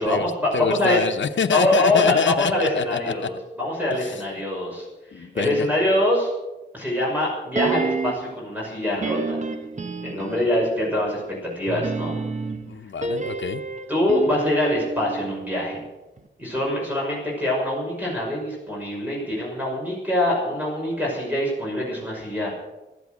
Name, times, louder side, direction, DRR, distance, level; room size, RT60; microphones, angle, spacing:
voice 1, 0.0-1.0 1.5-4.9 5.1-6.3 6.7-9.4 10.0-12.1 13.9-15.8 16.4-22.5, left 1 dB, 10° right, -4 dB, 6.1 m, -24 dB
voice 2, 0.5-3.3 3.9-4.2 5.1-5.7 12.7-13.6, left 6 dB, 85° left, 6 dB, 0.9 m, -25 dB
sound 1, 7.6-8.4 9.0-10.6 11.7-15.9 16.2-16.3, right 4 dB, 40° right, 1.2 m, -29 dB
15.5 x 13.0 x 6.4 m, 1.0 s
wide cardioid pair, 135°, 19 cm